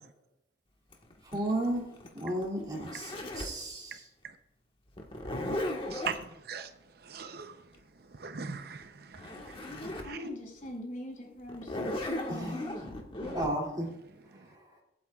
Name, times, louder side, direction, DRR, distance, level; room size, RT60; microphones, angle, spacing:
Zipper (clothing), 0.9-3.6 5.0-6.2 8.8-8.9 9.1-10.2 10.6-10.7 11.5-13.5, left 1 dB, 30° left, 1.5 m, -36 dB
voice 1, 1.3-1.9 2.1-4.0 12.3-12.6 13.3-13.9, right 1 dB, 25° right, 2.7 m, -33 dB
voice 2, 5.9-6.7 7.0-7.6 8.1-9.6 10.0-10.3 13.2-13.4, right 6 dB, 60° right, 0.7 m, -40 dB
voice 3, 10.0-12.8, left 1 dB, 45° left, 4.8 m, -43 dB
23.0 x 8.6 x 2.4 m
head